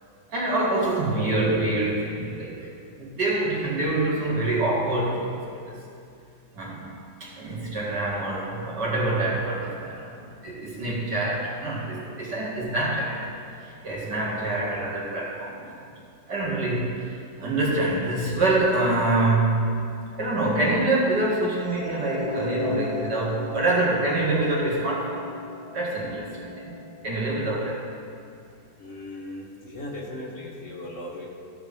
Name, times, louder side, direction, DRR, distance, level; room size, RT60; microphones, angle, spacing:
voice 1, 0.3-2.7 3.0-5.4 5.6-5.8 6.5-6.9 7.2-15.8 16.3-19.9 20.1-25.2 25.7-26.7 27.0-27.8, right 2 dB, 70° right, -5 dB, 2.5 m, -26 dB
sound 1, 21.6-27.8, left 2 dB, 20° left, 2.4 m, -35 dB
voice 2, 28.8-31.3, left 1 dB, 50° left, -2 dB, 1.3 m, -37 dB
15.0 x 6.1 x 3.4 m, 2.5 s
omnidirectional pair, 1.9 m